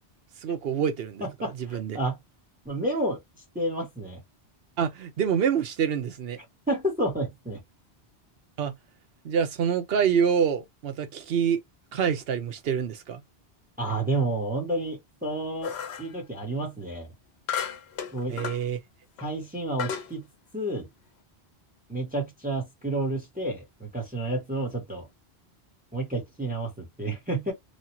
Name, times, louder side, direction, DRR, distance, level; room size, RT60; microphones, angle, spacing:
voice 1, 0.4-1.2 1.5-2.0 4.8-6.4 8.6-8.7 9.2-11.6 11.9-13.2 18.3-18.8, right 7 dB, 70° right, 0.9 m, -26 dB
voice 2, 1.2-2.2 2.6-3.2 3.5-4.2 6.7-7.6 13.8-17.1 18.1-18.4 19.2-20.2 20.5-20.9 21.9-25.0 25.9-27.5, right 1 dB, 10° right, 1.1 m, -30 dB
sound 1, 15.6-16.1 17.5-18.6 19.2-19.3 19.8-20.1, left 8 dB, 80° left, 0.9 m, -33 dB
3.1 x 2.3 x 2.7 m
omnidirectional pair, 1.1 m